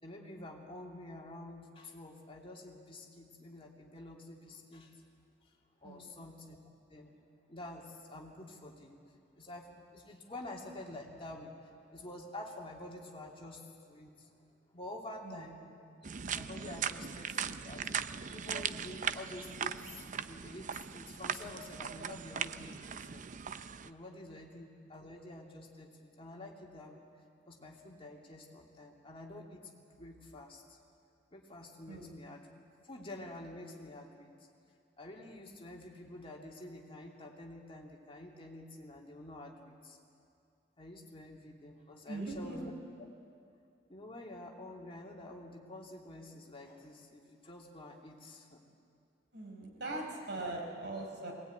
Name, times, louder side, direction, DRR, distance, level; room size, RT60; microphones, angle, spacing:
voice 1, 0.0-5.0 5.8-6.6 6.9-7.2 7.5-9.0 9.3-14.3 14.7-15.6 16.3-17.9 18.2-23.2 23.8-27.0 27.5-30.8 31.3-32.4 32.8-34.3 35.0-40.0 40.8-42.7 43.9-48.6 49.8-50.3, left 1 dB, 30° left, -1 dB, 2.7 m, -48 dB
voice 2, 5.8-6.2 15.2-15.5 24.3-24.5 31.9-32.2 42.1-42.6 49.3-51.3, right 2 dB, 65° right, 0 dB, 4.8 m, -41 dB
sound 1, 16.0-23.9, right 7 dB, 45° right, 0.5 m, -39 dB
21.5 x 19.0 x 9.5 m, 2.4 s
head